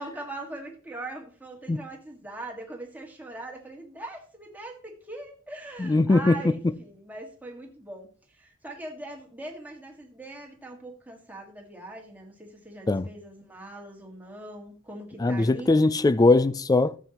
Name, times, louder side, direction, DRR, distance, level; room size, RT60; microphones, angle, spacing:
voice 1, 0.0-8.1 8.4-15.7, right 2 dB, 10° right, 1.8 m, -41 dB
voice 2, 5.8-6.5 12.9-13.1 15.2-17.0, left 2 dB, 20° left, 0.3 m, -21 dB
13.0 x 7.4 x 2.9 m
head